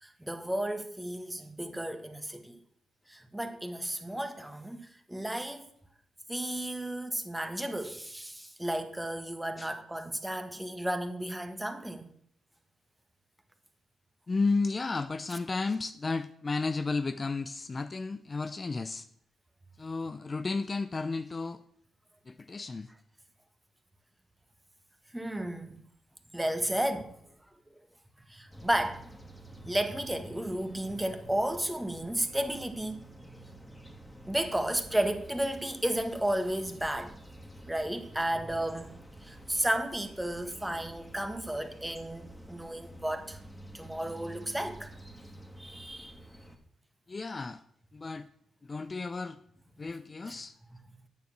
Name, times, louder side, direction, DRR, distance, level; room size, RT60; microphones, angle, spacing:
voice 1, 0.0-2.6 3.1-5.7 6.3-12.1 25.1-25.8 26.3-27.1 28.3-29.1 29.6-33.0 34.3-37.2 37.6-38.9 39.2-43.4 43.7-45.2 45.6-46.1 50.3-50.4, right 1 dB, 10° right, 1.7 m, -33 dB
voice 2, 14.3-19.1 19.8-21.6 22.3-22.9 47.1-47.6 47.9-48.3 48.6-49.4 49.8-50.5, left 3 dB, 40° left, 0.6 m, -33 dB
sound 1, 28.5-46.6, right 1 dB, 10° left, 2.3 m, -50 dB
9.4 x 6.9 x 6.1 m
hypercardioid pair, 40°, 0 cm